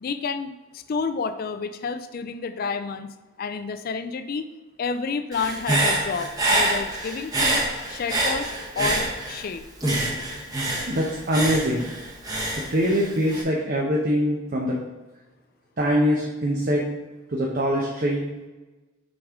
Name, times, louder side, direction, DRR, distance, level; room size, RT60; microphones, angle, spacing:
voice 1, 0.0-3.1 3.4-4.5 4.8-8.5 8.8-9.6, left 5 dB, 50° left, 10 dB, 0.4 m, -30 dB
Human voice / Breathing, 5.3-9.5 9.8-13.4, right 1 dB, 20° right, 1.1 m, -26 dB
voice 2, 10.9-11.9 12.7-14.8 15.8-16.9 17.3-18.2, equal, 45° right, -2 dB, 0.8 m, -23 dB
6.1 x 5.1 x 3.6 m, 1.1 s
head